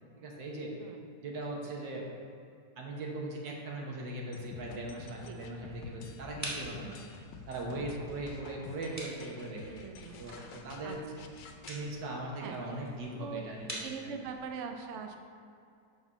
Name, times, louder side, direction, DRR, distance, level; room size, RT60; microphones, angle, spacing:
voice 1, 0.2-0.7 1.2-2.1 2.8-7.0 7.5-9.7 10.2-11.0 11.7-14.1, right 2 dB, 90° right, -1 dB, 1.9 m, -39 dB
sound 1, 4.3-11.8, left 5 dB, 90° left, 1.3 m, -50 dB
sound 2, 4.6-14.5, equal, 10° right, 1.5 m, -48 dB
voice 2, 7.7-8.1 9.7-10.2 10.8-11.3 12.4-12.6 13.2-13.4 13.8-15.2, right 6 dB, 65° right, 4 dB, 0.8 m, -42 dB
7.9 x 4.2 x 6.0 m, 2.4 s
omnidirectional pair, 1.9 m